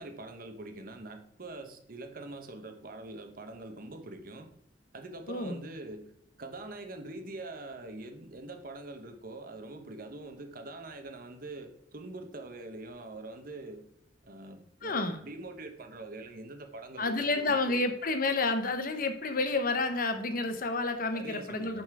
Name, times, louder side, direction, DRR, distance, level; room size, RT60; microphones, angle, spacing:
voice 1, 0.0-4.5 4.9-6.1 6.4-13.8 14.2-17.8 21.1-21.8, right 2 dB, 55° right, 5 dB, 1.1 m, -44 dB
voice 2, 5.3-5.6 14.8-15.2 17.0-21.8, left 3 dB, 50° left, 7 dB, 1.0 m, -30 dB
10.5 x 4.2 x 4.8 m, 0.71 s
head